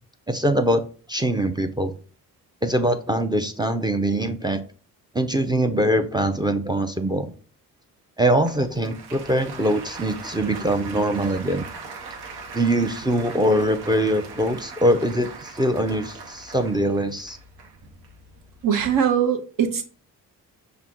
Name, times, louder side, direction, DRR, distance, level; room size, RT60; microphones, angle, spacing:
voice 1, 0.3-0.8 1.1-1.9 2.6-4.6 5.1-7.3 8.2-11.6 12.5-17.4, right 1 dB, 10° right, 8 dB, 0.5 m, -22 dB
Applause, 8.3-18.9, right 4 dB, 85° right, 0.8 m, -40 dB
voice 2, 18.6-19.8, right 8 dB, 60° right, 7 dB, 0.9 m, -21 dB
5.7 x 2.2 x 3.6 m, 0.38 s
supercardioid pair, 60°, 38 cm